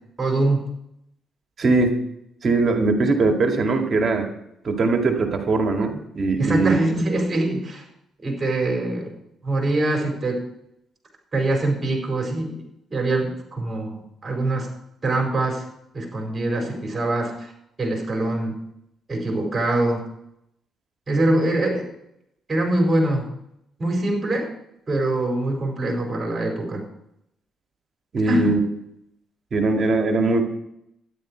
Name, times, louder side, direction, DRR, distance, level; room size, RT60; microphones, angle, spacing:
voice 1, 0.2-0.6 6.4-7.8 8.2-9.1 9.4-10.4 11.3-12.6 12.9-14.7 15.0-15.6 15.9-17.3 17.8-18.5 19.1-20.0 21.1-21.8 22.5-23.2 23.8-24.5 24.9-26.8 28.3-28.5, right 2 dB, 30° right, 2 dB, 4.7 m, -23 dB
voice 2, 1.6-2.0 2.4-4.3 4.6-6.8 28.1-28.6 29.5-30.4, right 3 dB, 45° right, 3 dB, 2.2 m, -20 dB
12.5 x 11.0 x 4.6 m, 0.78 s
cardioid pair, 90°, 0 cm